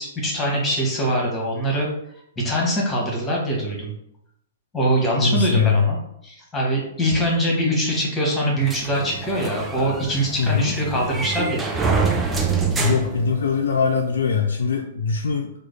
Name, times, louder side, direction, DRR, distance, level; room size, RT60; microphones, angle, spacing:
voice 1, 0.0-1.9 2.4-3.9 4.7-6.0 6.2-11.9, equal, 15° left, -2 dB, 1.2 m, -23 dB
voice 2, 5.1-5.9 10.4-10.7 12.8-15.5, left 5 dB, 70° left, 2 dB, 0.3 m, -21 dB
sound 1, 8.7-13.9, right 4 dB, 15° right, 0.4 m, -26 dB
3.1 x 2.0 x 3.9 m, 0.76 s
figure-of-eight pair, 110°, 0 cm